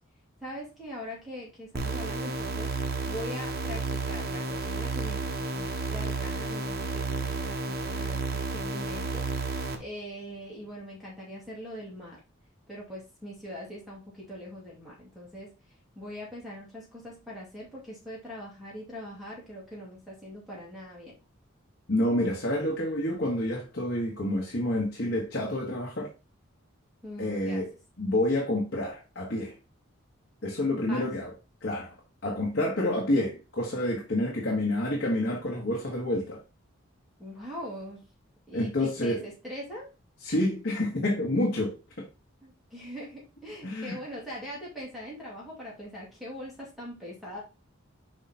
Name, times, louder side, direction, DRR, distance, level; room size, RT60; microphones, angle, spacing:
voice 1, 0.4-2.8 3.1-9.3 9.8-12.2 12.7-21.1 27.0-27.6 30.7-31.2 37.2-38.0 38.5-39.9 42.4-47.4, equal, ahead, 2.3 m, -42 dB
sound 1, 1.7-9.7, right 3 dB, 45° right, 1.1 m, -32 dB
voice 2, 21.9-26.1 27.2-27.7 28.0-29.5 30.4-31.3 31.6-31.9 32.2-36.4 38.5-39.2 40.2-42.1 43.6-44.0, left 1 dB, 55° left, 1.3 m, -28 dB
5.4 x 4.9 x 4.2 m
head